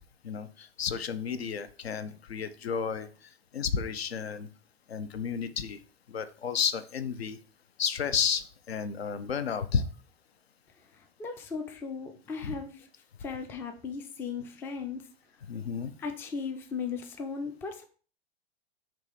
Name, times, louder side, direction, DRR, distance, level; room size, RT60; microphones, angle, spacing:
voice 1, 0.2-4.5 4.9-5.8 6.1-7.4 7.8-9.8 12.4-12.6 15.5-15.9, left 7 dB, 75° left, 11 dB, 0.5 m, -32 dB
voice 2, 10.9-12.9 13.2-15.1 16.0-17.8, left 5 dB, 10° left, 5 dB, 0.3 m, -37 dB
3.5 x 2.9 x 4.8 m, 0.40 s
figure-of-eight pair, 90°, 31 cm